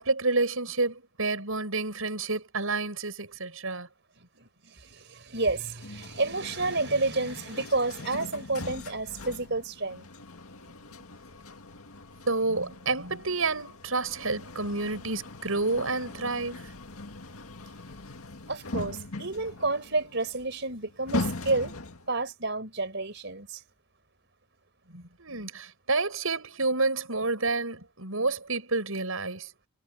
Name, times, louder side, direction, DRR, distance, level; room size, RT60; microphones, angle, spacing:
voice 1, 0.0-3.9 12.3-16.6 24.9-29.5, right 3 dB, 75° right, 6.4 m, -29 dB
voice 2, 4.8-10.1 18.5-21.8 22.1-23.6, right 3 dB, 55° right, 5.0 m, -30 dB
sound 1, 5.8-22.2, left 2 dB, 90° left, 2.1 m, -40 dB
head